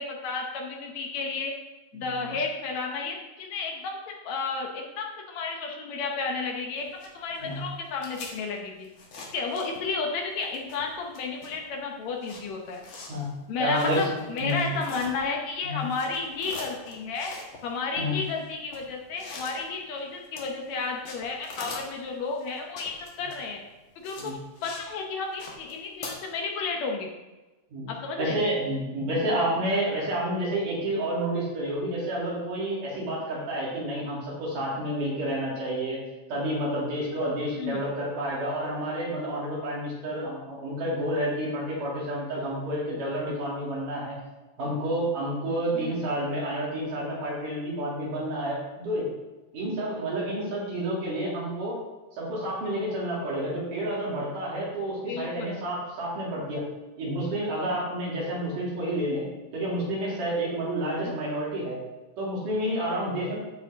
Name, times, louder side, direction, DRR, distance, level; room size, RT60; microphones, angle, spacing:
voice 1, 0.0-1.5 1.9-8.9 9.3-12.8 13.5-17.3 17.6-23.6 24.0-24.3 24.6-27.1 27.9-28.4 37.6-37.8 45.7-46.0 55.1-55.5 61.0-61.1, left 4 dB, 70° left, 1 dB, 2.0 m, -32 dB
voice 2, 1.9-2.3 7.4-7.6 13.1-13.3 13.6-14.1 14.4-14.7 15.6-15.8 18.0-18.1 24.2-24.4 27.7-36.0 36.3-44.2 44.6-49.1 49.5-51.8 52.1-56.6 57.0-59.3 59.5-61.8 62.2-63.4, right 1 dB, 85° right, -5 dB, 4.2 m, -29 dB
sound 1, 6.8-10.1 10.4-15.5 15.8-24.9 25.2-26.1, left 3 dB, 50° left, 1.7 m, -44 dB
13.5 x 5.2 x 3.5 m, 1.1 s
omnidirectional pair, 3.6 m